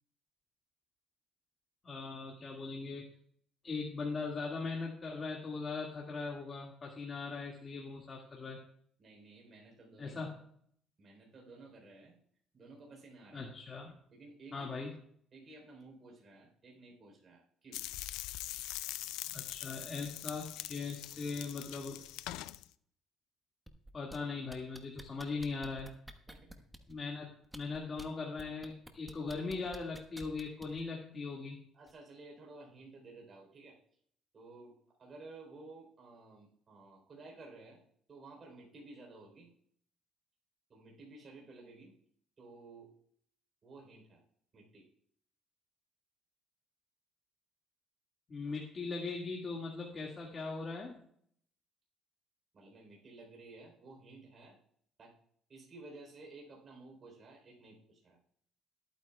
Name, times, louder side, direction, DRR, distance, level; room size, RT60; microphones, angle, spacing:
voice 1, 1.8-3.1 3.6-8.6 10.0-10.3 13.3-13.9 14.5-14.9 19.3-22.0 23.9-25.9 26.9-31.6 48.3-51.0, left 4 dB, 35° left, -2 dB, 2.0 m, -40 dB
voice 2, 9.0-10.2 11.0-12.1 12.5-13.5 14.1-15.0 15.3-17.8 26.3-26.6 31.7-33.8 34.3-37.8 38.1-39.5 40.7-41.9 42.4-42.9 43.6-44.2 44.5-44.9 52.5-54.6 55.0-55.1 55.5-58.2, right 3 dB, 40° right, 0 dB, 3.7 m, -54 dB
sound 1, 17.7-22.6, left 16 dB, 85° left, 0.4 m, -43 dB
sound 2, 23.7-24.2 24.5-26.9 27.4-28.1 28.4-30.8 31.9-32.0, right 1 dB, 10° right, 1.3 m, -50 dB
20.5 x 9.1 x 2.3 m, 0.65 s
cardioid pair, 90°, 0 cm